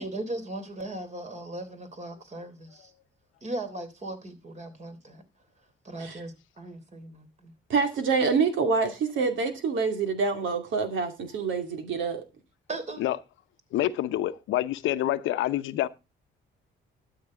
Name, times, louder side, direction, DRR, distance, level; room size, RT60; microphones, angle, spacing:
voice 1, 0.0-2.9 3.4-5.2 5.8-7.5 12.7-13.0, right 2 dB, 35° right, 3.4 m, -38 dB
voice 2, 7.7-12.2, right 5 dB, 75° right, 2.5 m, -26 dB
voice 3, 13.7-15.9, left 14 dB, 85° left, 0.8 m, -27 dB
12.5 x 8.2 x 3.7 m
cardioid pair, 90°, 20 cm